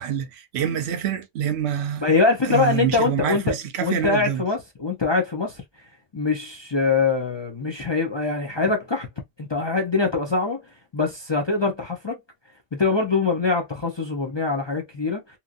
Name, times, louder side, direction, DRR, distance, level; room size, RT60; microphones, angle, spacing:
voice 1, 0.0-2.0 2.4-4.4, right 9 dB, 65° right, 0.8 m, -26 dB
voice 2, 2.0-3.5 3.8-5.6 6.1-9.1 9.4-10.6 10.9-12.1 12.8-15.2, left 4 dB, 35° left, 0.4 m, -23 dB
3.0 x 2.6 x 2.4 m
omnidirectional pair, 1.3 m